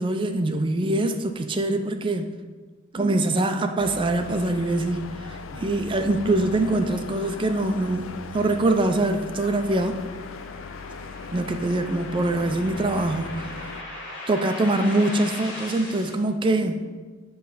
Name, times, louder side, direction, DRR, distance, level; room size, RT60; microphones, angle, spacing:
voice 1, 0.0-2.3 2.9-10.0 11.3-13.6 14.3-16.8, right 2 dB, 25° right, 6 dB, 0.4 m, -24 dB
sound 1, 3.8-13.8, left 5 dB, 75° left, 0.4 m, -39 dB
sound 2, 9.0-16.1, left 1 dB, 60° left, 2.1 m, -40 dB
7.8 x 3.1 x 5.7 m, 1.4 s
head